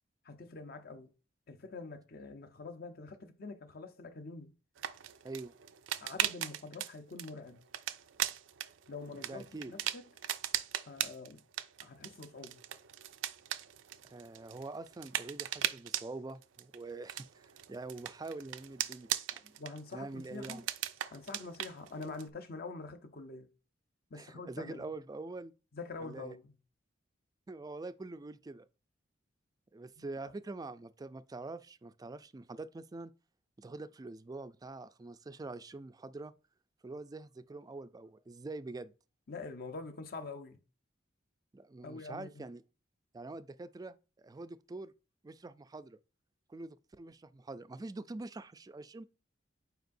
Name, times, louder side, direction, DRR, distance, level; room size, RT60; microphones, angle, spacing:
voice 1, 0.2-1.1 1.5-4.5 6.0-7.6 8.9-10.0 10.9-11.4 11.8-12.6 19.6-20.6 21.1-23.5 24.1-24.9 25.7-26.5 30.0-30.1 39.3-40.6 41.8-42.5, left 3 dB, 55° left, 0.7 m, -45 dB
sound 1, 4.8-22.3, right 11 dB, 90° right, 0.5 m, -39 dB
voice 2, 9.1-9.7 14.0-19.6 19.9-20.6 24.1-25.5 26.0-26.4 27.5-28.7 29.7-33.1 33.6-36.3 36.8-38.9 41.5-42.6 43.1-44.9 45.2-46.0 46.5-49.0, right 2 dB, 20° right, 0.3 m, -45 dB
8.0 x 4.7 x 2.6 m
head